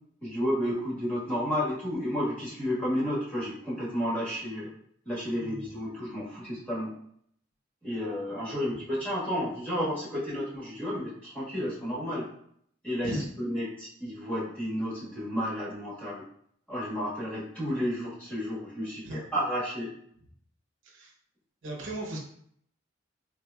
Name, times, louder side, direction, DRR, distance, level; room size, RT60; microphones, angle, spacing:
voice 1, 0.2-4.7 5.0-6.9 7.8-12.3 12.8-16.2 16.7-19.9, equal, 5° left, -8 dB, 1.3 m, -31 dB
voice 2, 21.6-22.2, right 1 dB, 80° right, 0 dB, 0.7 m, -36 dB
3.7 x 3.0 x 2.3 m, 0.67 s
head